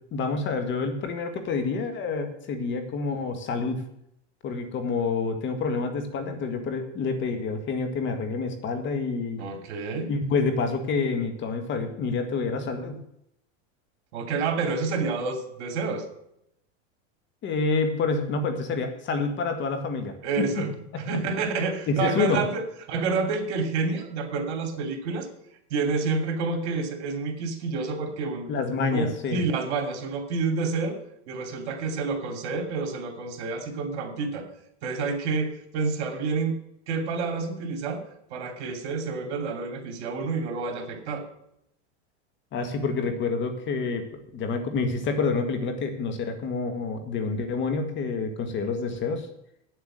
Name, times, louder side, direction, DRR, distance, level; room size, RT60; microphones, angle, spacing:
voice 1, 0.1-3.8 4.4-9.4 10.1-13.0 17.4-20.7 21.1-21.2 21.9-22.4 28.5-29.4 42.5-44.0 44.3-49.3, left 4 dB, 35° left, 7 dB, 1.8 m, -28 dB
voice 2, 9.4-10.1 14.1-16.0 20.2-22.6 22.9-25.3 25.7-28.5 28.9-31.0 31.3-34.4 34.8-36.6 36.9-38.0 38.3-41.2, right 4 dB, 65° right, 5 dB, 2.9 m, -29 dB
8.7 x 8.0 x 7.5 m, 0.76 s
supercardioid pair, 130°, 34 cm